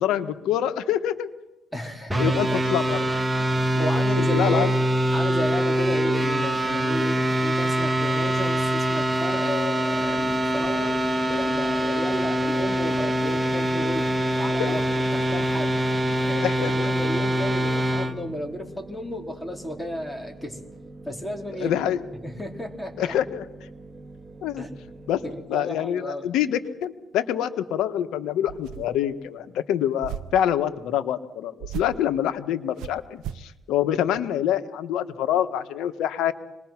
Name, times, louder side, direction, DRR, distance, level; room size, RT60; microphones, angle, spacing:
voice 1, 0.0-1.3 2.1-3.0 3.7-3.9 4.2-4.7 14.6-14.8 16.4-16.9 21.6-22.0 23.0-23.5 24.4-24.7 25.1-25.2 25.5-36.3, left 10 dB, 90° left, 10 dB, 1.4 m, -26 dB
voice 2, 1.7-2.6 3.8-4.7 5.1-20.6 21.1-21.8 22.2-23.1 24.6-24.7 25.3-26.4, equal, 10° left, 3 dB, 4.5 m, -33 dB
sound 1, 2.1-18.1, right 1 dB, 10° right, 2.1 m, -24 dB
sound 2, 9.9-25.4, right 2 dB, 35° right, 3.8 m, -44 dB
sound 3, 28.5-29.1 30.0-30.5 31.6-32.1 32.8-33.5, right 11 dB, 90° right, 0.7 m, -36 dB
26.0 x 21.0 x 6.0 m, 0.94 s
cardioid pair, 90°, 0 cm